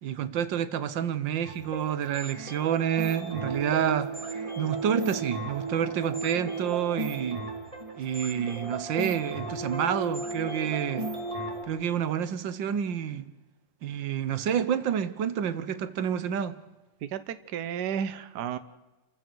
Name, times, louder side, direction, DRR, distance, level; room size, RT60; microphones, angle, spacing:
voice 1, 0.0-7.4 8.0-11.1 11.7-13.3 13.8-16.5, right 9 dB, 90° right, 1.7 m, -29 dB
sound 1, 1.4-11.6, right 2 dB, 15° right, 3.4 m, -35 dB
voice 2, 17.0-18.6, right 8 dB, 70° right, 1.4 m, -32 dB
29.5 x 15.0 x 6.2 m
omnidirectional pair, 2.0 m